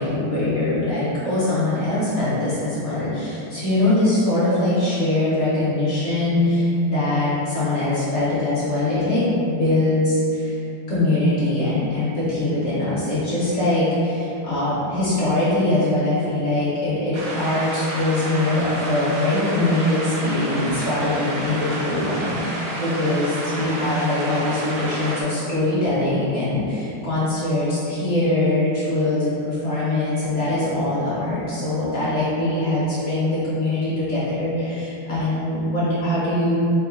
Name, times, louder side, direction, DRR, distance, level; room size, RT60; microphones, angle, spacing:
voice 1, 0.0-10.6 10.9-36.6, left 2 dB, 55° left, -10 dB, 0.8 m, -22 dB
sound 1, 17.1-25.2, right 1 dB, 70° right, 1.2 m, -30 dB
3.5 x 2.0 x 3.6 m, 2.8 s
omnidirectional pair, 2.3 m